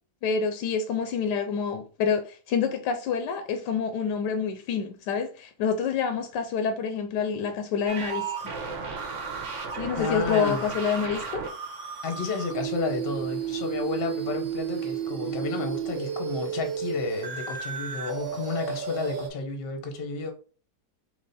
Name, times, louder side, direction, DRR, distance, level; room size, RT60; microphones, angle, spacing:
voice 1, 0.2-8.5 9.8-11.5, left 6 dB, 85° left, 1.2 m, -27 dB
sound 1, 7.9-19.3, right 7 dB, 50° right, 1.2 m, -33 dB
voice 2, 10.0-10.8 12.0-20.3, left 4 dB, 40° left, 0.9 m, -32 dB
3.9 x 3.2 x 4.1 m
omnidirectional pair, 1.8 m